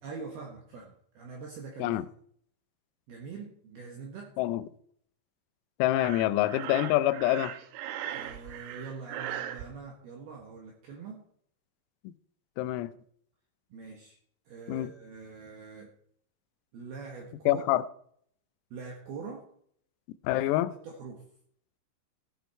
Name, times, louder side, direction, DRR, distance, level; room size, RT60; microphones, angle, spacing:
voice 1, 0.0-2.0 3.1-4.4 8.1-11.2 13.7-14.2 14.5-15.9 16.7-17.8 18.7-19.5 20.7-21.2, right 4 dB, 65° right, 2.9 m, -43 dB
voice 2, 5.8-7.6 12.1-12.2 12.6-12.9 14.7-14.9 17.5-17.8 20.3-20.7, left 15 dB, 90° left, 3.5 m, -26 dB
Breathing, 5.9-9.7, right 11 dB, 85° right, 3.7 m, -39 dB
15.5 x 10.5 x 4.5 m
omnidirectional pair, 6.0 m